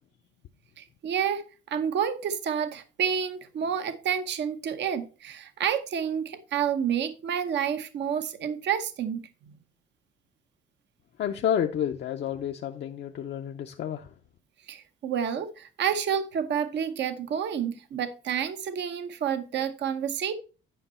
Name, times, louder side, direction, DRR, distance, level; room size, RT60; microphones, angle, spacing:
voice 1, 0.8-1.4 1.7-9.5 14.7-20.3, right 8 dB, 65° right, 0.8 m, -29 dB
voice 2, 11.2-14.1, left 9 dB, 65° left, 0.6 m, -30 dB
10.0 x 5.3 x 4.3 m
cardioid pair, 90°, 20 cm